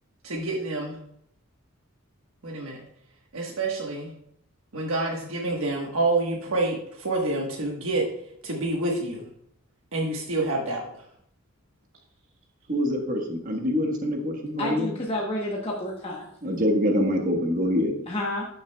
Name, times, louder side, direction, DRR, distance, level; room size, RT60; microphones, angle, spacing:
voice 1, 0.2-0.9 2.4-2.8 3.3-4.1 4.7-8.0 8.4-9.3 9.9-10.9, right 2 dB, 75° right, -1 dB, 1.3 m, -27 dB
voice 2, 12.7-14.9 16.4-18.0, left 1 dB, 40° right, 2 dB, 1.2 m, -25 dB
voice 3, 14.6-16.3 18.1-18.5, left 1 dB, 25° left, -3 dB, 1.0 m, -30 dB
12.0 x 6.4 x 2.3 m, 0.71 s
head